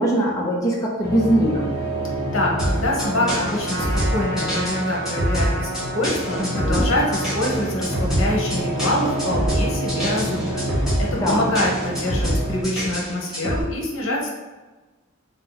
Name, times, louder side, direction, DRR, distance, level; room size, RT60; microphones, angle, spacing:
voice 1, 0.0-1.7 6.4-6.9 11.2-11.5, right 1 dB, 15° left, -4 dB, 0.5 m, -21 dB
sound 1, 1.0-12.6, right 1 dB, 45° left, 1.2 m, -29 dB
voice 2, 2.3-14.3, left 1 dB, 75° left, -2 dB, 1.0 m, -25 dB
sound 2, 2.6-13.6, equal, 5° right, 1.4 m, -25 dB
Trumpet, 3.0-7.6, right 1 dB, 80° right, 0.9 m, -32 dB
3.7 x 2.8 x 3.9 m, 1.2 s
head